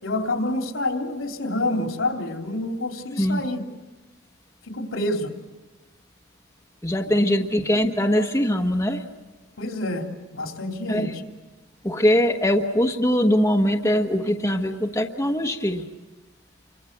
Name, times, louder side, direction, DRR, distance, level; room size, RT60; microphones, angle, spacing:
voice 1, 0.0-3.6 4.7-5.3 9.6-10.1 10.3-11.1, left 1 dB, 85° left, 3 dB, 3.3 m, -27 dB
voice 2, 6.8-9.0 10.9-11.1 11.8-15.8, equal, 15° left, 1 dB, 1.3 m, -22 dB
29.0 x 25.0 x 6.8 m, 1.2 s
head